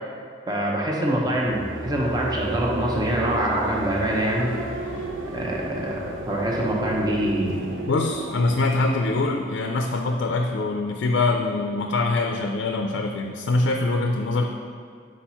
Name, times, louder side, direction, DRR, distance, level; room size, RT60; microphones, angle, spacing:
voice 1, 0.5-4.5 5.3-7.8, right 1 dB, 20° right, -3 dB, 0.7 m, -25 dB
sound 1, 1.0-10.0, right 2 dB, 80° right, 0.7 m, -33 dB
voice 2, 7.9-14.4, left 2 dB, 70° left, 3 dB, 0.4 m, -24 dB
4.8 x 4.4 x 5.5 m, 2.3 s
head